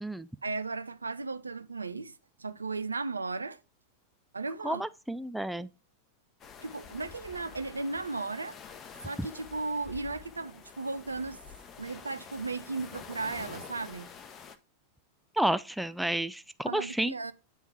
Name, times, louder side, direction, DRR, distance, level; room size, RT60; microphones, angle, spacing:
voice 1, 0.4-3.6 4.3-4.8 6.6-8.6 9.0-11.4 11.8-14.1 16.6-17.3, right 3 dB, 80° right, 0.4 m, -36 dB
voice 2, 4.6-5.7 15.4-17.1, right 1 dB, ahead, 0.3 m, -31 dB
sound 1, 6.4-14.6, left 6 dB, 30° left, 0.7 m, -48 dB
9.1 x 3.6 x 4.4 m
figure-of-eight pair, 90°, 0 cm